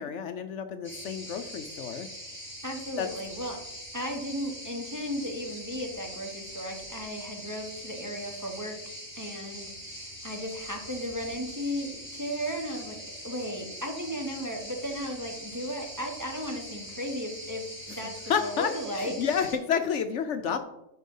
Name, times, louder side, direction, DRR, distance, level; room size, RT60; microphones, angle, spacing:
voice 1, 0.0-2.1 3.0-3.1 18.3-20.6, left 7 dB, 65° left, 8 dB, 0.9 m, -30 dB
At Beirut Crickets in pine forest, 0.8-19.5, equal, 10° left, 3.6 m, -43 dB
voice 2, 2.6-3.6 3.9-13.0 13.2-19.1, equal, 15° right, 1 dB, 1.0 m, -35 dB
10.0 x 4.5 x 5.4 m, 0.90 s
omnidirectional pair, 1.4 m